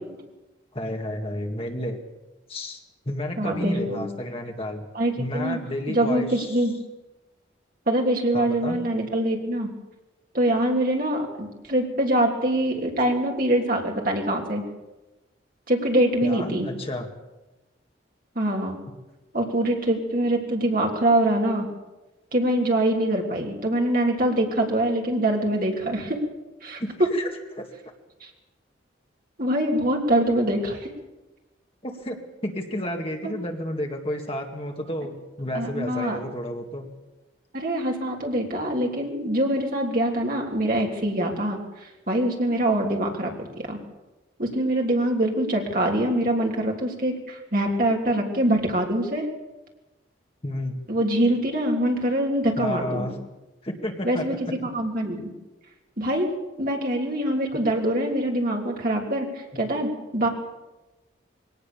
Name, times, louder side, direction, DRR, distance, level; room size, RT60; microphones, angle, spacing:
voice 1, 0.7-2.0 2.5-4.9 5.2-6.6 8.3-8.8 16.2-17.1 26.8-27.3 27.5-27.7 31.8-32.2 32.4-36.9 50.4-50.8 52.6-53.1 53.6-54.3 59.5-59.6, left 1 dB, 30° left, 2 dB, 2.0 m, -31 dB
voice 2, 3.4-4.1 4.9-5.6 5.9-6.7 7.9-9.7 10.3-14.6 15.7-16.7 18.4-18.8 19.3-21.7 22.3-26.2 26.6-26.8 28.2-28.3 29.4-30.9 33.2-33.3 35.5-36.2 37.5-43.8 44.4-49.3 50.9-53.1 54.0-55.3 56.0-56.3 56.6-60.3, right 1 dB, 45° right, 0 dB, 3.4 m, -24 dB
22.0 x 18.0 x 7.0 m, 1.1 s
head